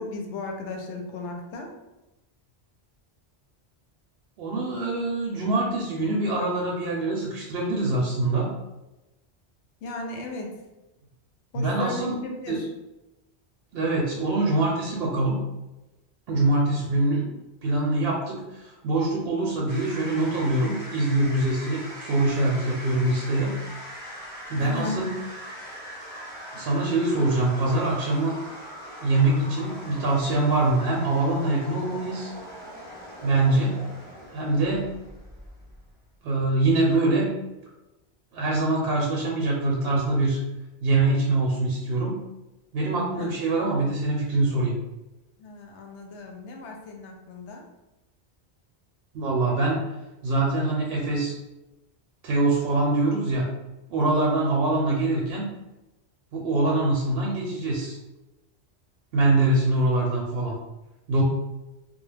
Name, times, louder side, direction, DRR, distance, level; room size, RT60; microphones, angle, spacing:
voice 1, 0.0-1.7 9.8-10.5 11.5-12.7 24.6-25.0 43.2-43.4 45.4-47.6, left 2 dB, 85° left, 2 dB, 0.9 m, -35 dB
voice 2, 4.4-8.5 11.5-12.2 12.5-12.6 13.7-15.4 16.3-17.2 17.6-23.5 24.5-25.2 26.5-28.4 29.0-32.3 33.2-33.8 34.3-34.9 36.2-37.3 38.3-40.4 40.8-42.2 42.7-44.8 49.1-49.9 50.2-51.3 52.2-53.5 53.9-55.4 56.3-58.0 59.1-60.5 61.1-61.2, right 2 dB, 70° right, -3 dB, 0.8 m, -24 dB
sound 1, 19.7-36.0, equal, 10° left, 0.9 m, -41 dB
2.3 x 2.0 x 3.2 m, 1.0 s
omnidirectional pair, 1.1 m